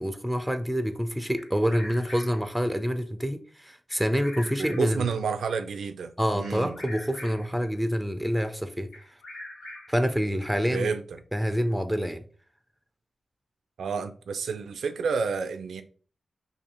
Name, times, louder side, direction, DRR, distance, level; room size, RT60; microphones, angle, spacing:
voice 1, 0.0-5.1 6.2-8.9 9.9-10.9 11.3-12.2, equal, ahead, 0.5 m, -27 dB
Bird vocalization bird call bird song, 1.4-2.5 3.9-5.1 6.4-7.6 8.9-10.1, left 1 dB, 90° left, 0.9 m, -43 dB
voice 2, 4.6-6.8 10.7-11.0 13.8-15.8, right 5 dB, 85° right, 0.3 m, -30 dB
2.8 x 2.6 x 4.2 m
supercardioid pair, 40°, 0 cm